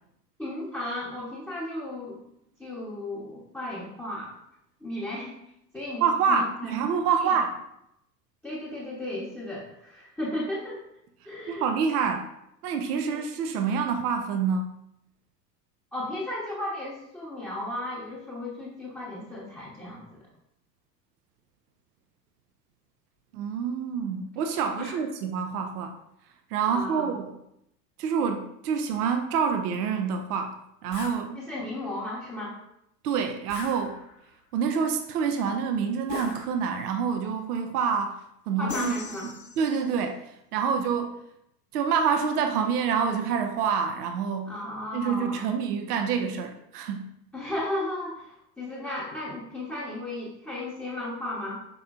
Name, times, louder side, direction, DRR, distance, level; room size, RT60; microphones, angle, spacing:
voice 1, 0.4-2.2 2.6-4.4 4.8-5.4 5.7-6.8 7.2-7.4 8.4-10.8 11.3-11.7 13.1-13.2 15.9-20.2 24.8-25.0 26.7-27.1 31.3-32.6 38.6-39.3 44.5-45.5 47.3-51.6, left 1 dB, 5° left, -7 dB, 0.9 m, -35 dB
voice 2, 6.0-7.5 11.5-12.3 12.6-14.7 23.3-26.0 26.5-27.4 28.0-30.5 30.8-31.4 33.0-34.0 34.5-38.2 38.5-38.9 39.6-41.2 41.7-44.6 44.9-47.1, right 6 dB, 65° right, 6 dB, 0.6 m, -27 dB
sound 1, 30.9-31.2 33.5-34.3 36.1-36.9 38.7-39.8, left 5 dB, 85° left, 0.7 m, -39 dB
5.3 x 4.2 x 2.4 m, 0.79 s
figure-of-eight pair, 75°, 49 cm